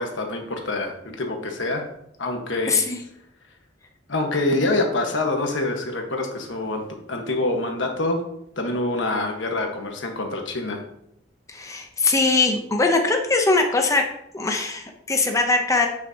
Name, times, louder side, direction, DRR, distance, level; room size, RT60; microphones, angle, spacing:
voice 1, 0.0-1.8 2.2-2.7 4.1-8.2 8.6-10.8, left 2 dB, 80° left, 3 dB, 1.3 m, -26 dB
voice 2, 2.7-3.0 11.5-14.0 14.3-15.9, left 3 dB, 15° left, 3 dB, 0.7 m, -21 dB
8.0 x 6.5 x 2.8 m, 0.77 s
head